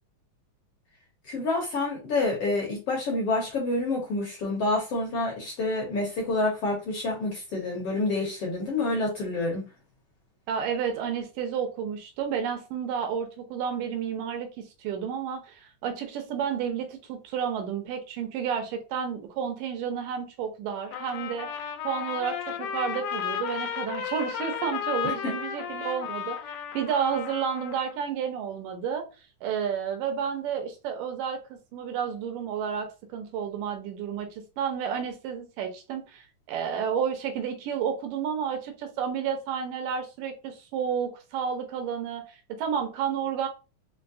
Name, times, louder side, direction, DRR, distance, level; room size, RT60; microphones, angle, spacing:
voice 1, 1.2-9.6 25.0-25.3, left 2 dB, 65° left, 1.6 m, -28 dB
voice 2, 10.5-29.1 29.4-31.4 31.7-43.5, right 7 dB, 85° right, 2.4 m, -31 dB
Trumpet, 20.9-28.0, left 8 dB, 85° left, 2.1 m, -34 dB
5.6 x 2.0 x 2.6 m
omnidirectional pair, 3.7 m